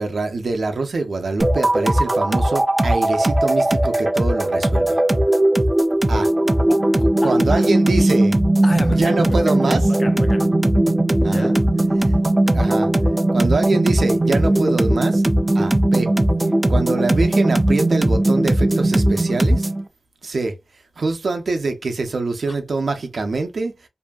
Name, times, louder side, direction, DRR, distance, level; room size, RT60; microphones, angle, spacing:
voice 1, 0.0-5.0 6.1-6.3 7.2-8.4 8.9-9.8 11.2-11.5 12.5-12.9 13.3-15.2 15.5-16.1 16.7-19.7 20.2-20.6 21.0-23.7, right 3 dB, 70° right, 0.6 m, -24 dB
sound 1, 1.4-19.8, right 1 dB, 20° right, 0.3 m, -18 dB
voice 2, 6.7-8.1 8.6-10.5 11.2-11.6 22.5-22.6, left 2 dB, 45° left, 0.5 m, -33 dB
2.7 x 2.5 x 2.3 m
wide cardioid pair, 100°, 0 cm